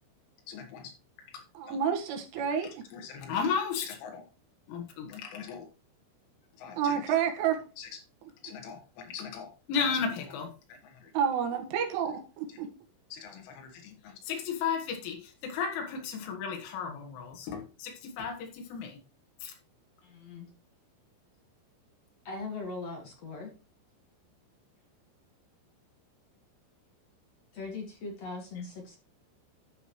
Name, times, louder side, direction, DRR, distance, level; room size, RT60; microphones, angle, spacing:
voice 1, 0.5-0.9 1.7-1.8 2.9-4.3 4.7-5.7 6.6-7.0 7.8-7.9 8.4-11.1 13.1-19.0 19.4-19.5, left 6 dB, 85° left, 2 dB, 4.2 m, -35 dB
voice 2, 1.6-2.8 6.8-7.6 11.1-12.7, right 8 dB, 90° right, 3 dB, 4.1 m, -29 dB
voice 3, 20.0-20.5 22.2-23.5 27.5-29.0, left 3 dB, 55° left, 1 dB, 2.0 m, -40 dB
12.0 x 6.2 x 3.1 m, 0.33 s
omnidirectional pair, 5.4 m